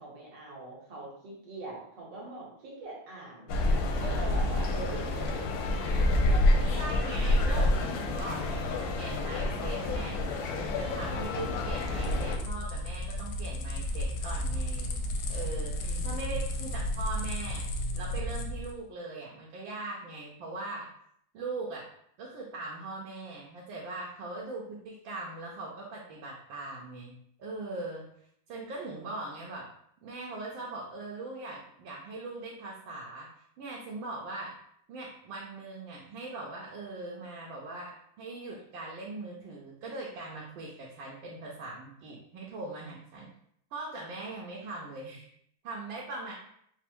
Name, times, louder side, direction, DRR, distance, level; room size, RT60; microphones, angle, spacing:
voice 1, 0.0-3.6 3.9-6.5 15.7-16.4, right 2 dB, 65° right, -4 dB, 1.8 m, -43 dB
sound 1, 3.5-12.4, left 2 dB, 70° left, 0.9 m, -28 dB
voice 2, 6.6-10.2 10.5-15.0 15.3-17.7 17.9-20.9 21.3-21.9 22.2-28.1 28.5-29.7 30.0-33.3 33.6-34.5 34.9-43.3 43.7-45.3 45.6-46.3, right 2 dB, 85° right, -3 dB, 1.4 m, -40 dB
sound 2, 11.2-18.8, left 1 dB, 85° left, 1.3 m, -34 dB
4.1 x 2.0 x 4.4 m, 0.71 s
omnidirectional pair, 2.1 m